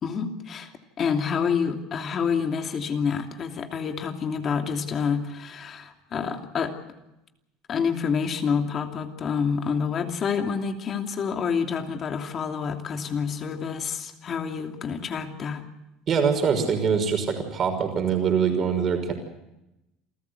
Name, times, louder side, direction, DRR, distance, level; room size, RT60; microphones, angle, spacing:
voice 1, 0.0-6.7 7.7-15.6, left 6 dB, 40° left, 5 dB, 2.9 m, -28 dB
voice 2, 16.1-19.1, right 6 dB, 40° right, 6 dB, 5.8 m, -23 dB
28.0 x 14.5 x 8.2 m, 0.92 s
supercardioid pair, 100°, 0 cm